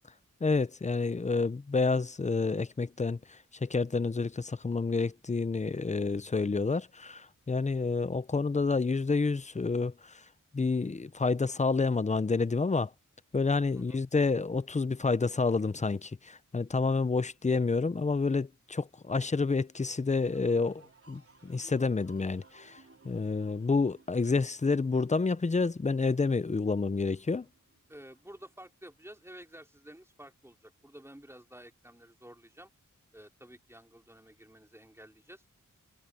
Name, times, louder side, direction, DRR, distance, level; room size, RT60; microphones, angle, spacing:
voice 1, 0.4-10.2 10.5-12.9 13.3-22.8 23.0-27.5, left 4 dB, 20° left, 0.6 m, -29 dB
sound 1, 20.0-29.6 30.0-30.5, right 3 dB, 45° right, 3.4 m, -61 dB
voice 2, 27.9-32.7 33.1-35.4, right 1 dB, 10° right, 3.9 m, -51 dB
wide cardioid pair, 80°, 32 cm